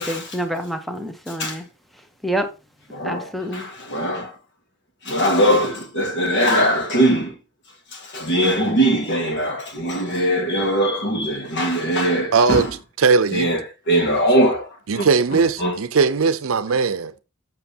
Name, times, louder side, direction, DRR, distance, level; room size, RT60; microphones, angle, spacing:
voice 1, 0.0-1.6 2.2-2.5 3.0-3.7, right 1 dB, ahead, 0.9 m, -27 dB
voice 2, 2.9-4.3 5.0-7.3 8.1-12.7 13.3-13.6 13.9-14.7 15.0-15.1 15.6-15.7, right 1 dB, 60° left, 1.7 m, -20 dB
voice 3, 12.3-12.7 13.0-13.5 14.9-17.2, right 5 dB, 75° right, 0.6 m, -19 dB
7.3 x 6.0 x 2.8 m
head